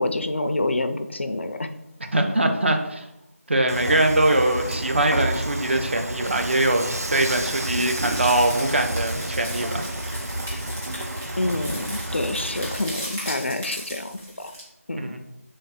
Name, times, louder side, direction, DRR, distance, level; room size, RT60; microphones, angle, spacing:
voice 1, 0.0-1.7 11.4-14.5 14.9-15.1, left 2 dB, 50° left, 8 dB, 0.4 m, -27 dB
voice 2, 2.1-3.1 3.5-9.9 14.9-15.2, right 1 dB, 50° right, 4 dB, 0.6 m, -22 dB
Dishes pots and pans / Frying (food), 3.7-12.9, right 1 dB, 90° right, 0.6 m, -30 dB
sound 1, 7.7-14.6, equal, 10° right, 0.7 m, -37 dB
3.3 x 3.3 x 4.2 m, 0.91 s
figure-of-eight pair, 170°, 8 cm